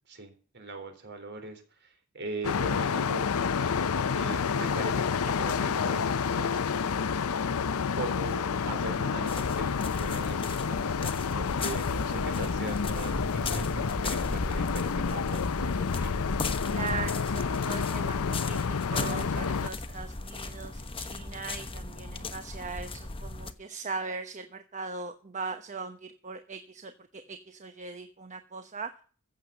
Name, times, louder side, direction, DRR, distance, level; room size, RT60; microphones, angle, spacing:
voice 1, 0.1-7.0 7.9-16.2, right 2 dB, 50° right, 7 dB, 3.7 m, -41 dB
sound 1, 2.4-19.7, left 6 dB, 70° left, 0.6 m, -29 dB
sound 2, 9.3-23.5, left 2 dB, 25° left, 1.1 m, -37 dB
voice 2, 16.7-28.9, right 4 dB, 35° right, 7 dB, 1.0 m, -39 dB
15.0 x 7.2 x 6.9 m, 0.40 s
head